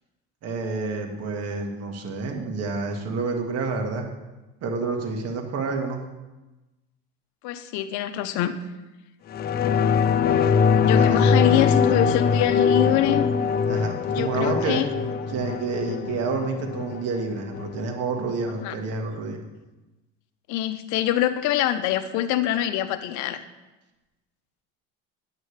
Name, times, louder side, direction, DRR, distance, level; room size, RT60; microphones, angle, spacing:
voice 1, 0.4-4.0 4.6-6.0 10.9-11.3 13.6-14.8 15.3-19.4, right 4 dB, 50° right, 2 dB, 1.6 m, -29 dB
voice 2, 7.4-8.5 10.8-13.3 14.1-14.9 18.6-18.8 20.5-23.5, left 12 dB, 65° left, 11 dB, 0.7 m, -24 dB
sound 1, 9.3-18.3 18.7-18.8, left 6 dB, 30° left, 0.4 m, -22 dB
9.1 x 8.2 x 3.3 m, 1.1 s
supercardioid pair, 115°, 32 cm